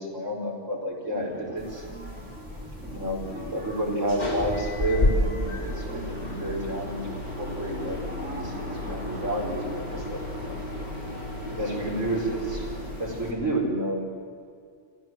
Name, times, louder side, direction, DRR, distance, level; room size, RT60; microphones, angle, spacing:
voice 1, 0.0-1.8 2.8-10.6 11.5-12.7 12.9-14.1, right 1 dB, 90° right, -2 dB, 5.4 m, -31 dB
sound 1, 1.1-10.9, equal, 10° right, 3.9 m, -43 dB
sound 2, 1.6-13.3, left 1 dB, 35° left, 5.3 m, -32 dB
27.0 x 14.5 x 7.8 m, 2.2 s
omnidirectional pair, 1.3 m